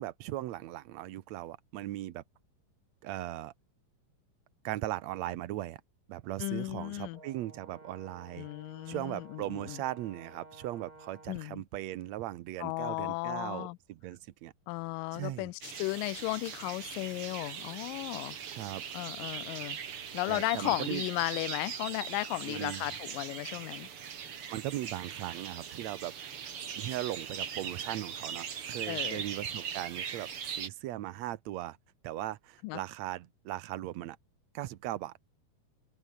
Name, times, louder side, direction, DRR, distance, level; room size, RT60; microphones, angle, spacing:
voice 1, 0.0-2.2 3.0-3.5 4.6-5.8 6.1-8.5 8.9-14.5 15.1-15.5 18.5-18.8 20.3-21.0 22.5-22.9 24.5-26.1 26.8-31.8 32.0-34.2 34.5-35.1, right 15 dB, 80° right, 1.6 m, -38 dB
voice 2, 6.4-7.2 8.4-9.8 11.3-11.6 12.6-13.8 14.7-18.4 18.9-19.8 20.1-23.9 28.9-29.2 32.6-32.8, left 24 dB, 80° left, 2.0 m, -35 dB
Brass instrument, 7.1-11.5, right 2 dB, 20° right, 6.8 m, -54 dB
sound 1, 15.6-30.7, right 7 dB, 45° right, 2.4 m, -40 dB
omnidirectional pair, 4.3 m